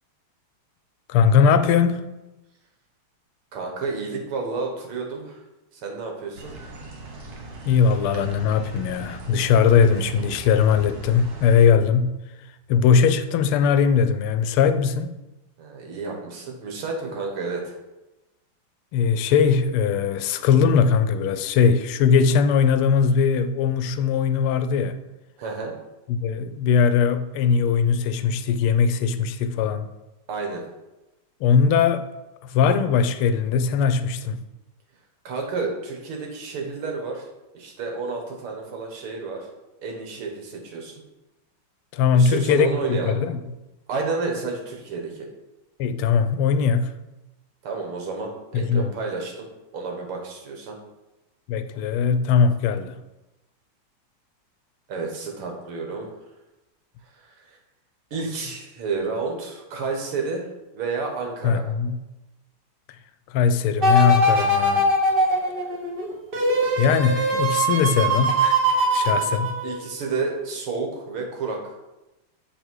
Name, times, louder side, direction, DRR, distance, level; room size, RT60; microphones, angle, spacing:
voice 1, 1.1-2.1 7.6-12.1 12.7-15.2 18.9-25.0 26.1-29.8 31.4-32.1 32.4-34.4 41.9-43.4 45.8-46.9 48.5-48.9 51.5-52.9 61.4-62.0 63.3-64.9 66.8-68.6 68.9-69.5, left 6 dB, 85° left, 1.5 m, -20 dB
voice 2, 3.5-5.4 5.7-6.5 15.6-17.7 25.4-25.7 30.3-30.7 35.2-37.3 37.5-39.5 39.8-40.9 42.1-43.2 43.9-45.3 47.6-49.5 49.7-50.8 54.9-56.1 57.1-57.6 58.1-60.5 60.7-61.7 69.6-71.7, right 4 dB, 80° right, 2.2 m, -30 dB
sound 1, 6.4-11.7, right 3 dB, 60° right, 1.7 m, -38 dB
sound 2, 63.8-70.0 70.5-70.6, right 1 dB, 45° right, 0.7 m, -21 dB
6.9 x 4.4 x 4.6 m
omnidirectional pair, 2.4 m